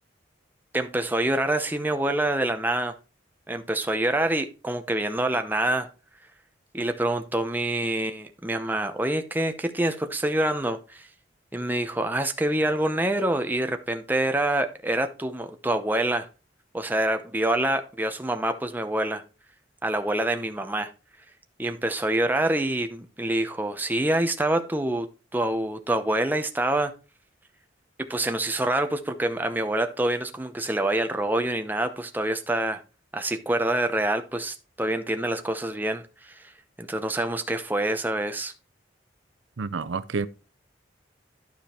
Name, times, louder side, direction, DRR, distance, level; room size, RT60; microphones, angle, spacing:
voice 1, 0.7-2.9 3.5-5.9 6.7-11.1 11.5-16.3 16.7-19.2 19.8-20.9 21.6-25.1 25.3-26.9 28.1-32.8 33.1-36.4 36.8-38.5, right 1 dB, 10° right, 0.7 m, -26 dB
voice 2, 39.6-40.3, right 4 dB, 80° right, 0.6 m, -29 dB
12.0 x 5.1 x 4.3 m
head